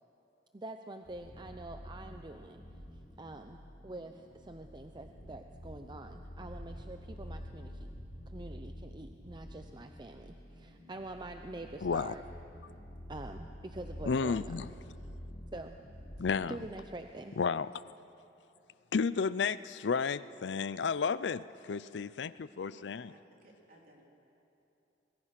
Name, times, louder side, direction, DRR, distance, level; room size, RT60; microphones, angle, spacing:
voice 1, 0.5-2.6 3.2-7.9 8.3-12.2 13.1-14.7 15.5-15.9 16.5-17.3, right 2 dB, 25° right, 6 dB, 0.7 m, -46 dB
sound 1, 1.0-16.7, equal, 40° left, 7.1 m, -48 dB
voice 2, 11.8-12.1 14.0-14.7 16.2-16.6 17.4-17.7 18.9-23.1, left 5 dB, 70° left, 17 dB, 0.5 m, -32 dB
voice 3, 22.6-24.0, right 1 dB, 55° right, -1 dB, 3.6 m, -59 dB
24.5 x 22.0 x 5.9 m, 2.9 s
head